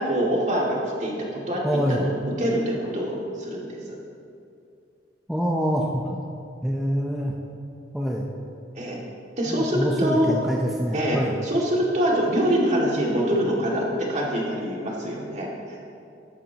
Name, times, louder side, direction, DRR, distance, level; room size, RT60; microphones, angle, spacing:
voice 1, 0.0-1.6 1.9-4.0 8.7-9.0 9.4-10.3 10.9-15.8, equal, 40° right, -3 dB, 2.2 m, -25 dB
voice 2, 1.6-2.0 5.3-6.2 6.6-7.3 7.9-8.3 9.5-11.4, equal, ahead, -2 dB, 0.6 m, -25 dB
14.5 x 11.5 x 2.9 m, 2.5 s
head